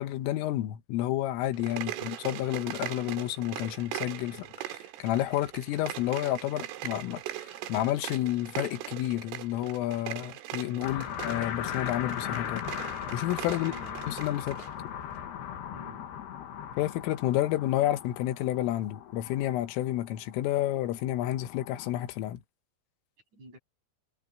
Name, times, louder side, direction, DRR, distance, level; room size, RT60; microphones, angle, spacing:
voice 1, 0.0-12.7 13.1-13.7 14.1-14.6 16.8-22.4, left 14 dB, 80° left, 3.8 m, -30 dB
sound 1, 1.5-14.7, right 14 dB, 80° right, 4.2 m, -40 dB
voice 2, 1.7-2.1 10.9-11.2 13.6-14.1 15.7-16.1 23.3-23.6, right 1 dB, 35° right, 9.0 m, -48 dB
sound 2, 10.8-21.9, left 9 dB, 60° left, 3.5 m, -38 dB
omnidirectional pair, 5.8 m